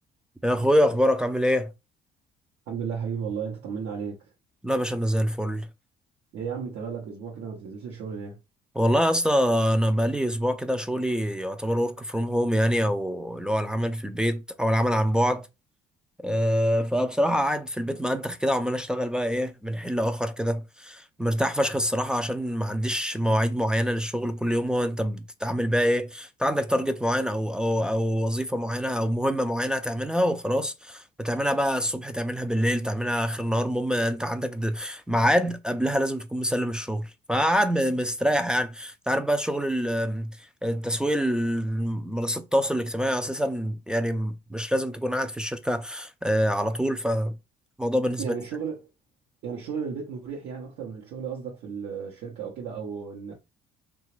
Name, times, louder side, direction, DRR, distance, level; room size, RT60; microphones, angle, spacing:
voice 1, 0.4-1.7 4.6-5.7 8.8-15.5 16.2-47.4 47.8-48.3, equal, 5° right, 0.3 m, -25 dB
voice 2, 2.7-4.3 6.3-8.4 48.2-48.9 49.4-53.4, right 6 dB, 75° right, 0.8 m, -34 dB
2.9 x 2.3 x 3.0 m
cardioid pair, 110°, 17 cm